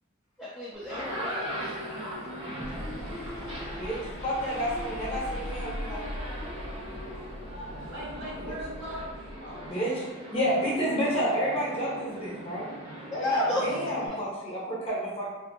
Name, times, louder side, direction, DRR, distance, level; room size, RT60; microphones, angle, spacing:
voice 1, 0.4-2.0 13.2-13.6, left 2 dB, ahead, -10 dB, 0.4 m, -32 dB
sound 1, 0.7-14.1, equal, 25° right, 0.8 m, -40 dB
sound 2, 0.8-9.0, left 1 dB, 85° right, 1.3 m, -45 dB
sound 3, 2.6-9.7, left 1 dB, 65° left, 0.4 m, -40 dB
voice 2, 3.8-6.1 8.4-8.5 9.7-12.7 13.1-15.3, equal, 30° left, -7 dB, 0.8 m, -30 dB
voice 3, 7.9-10.0 13.2-14.3, right 1 dB, 65° right, -8 dB, 1.2 m, -40 dB
2.6 x 2.5 x 2.5 m, 1.2 s
head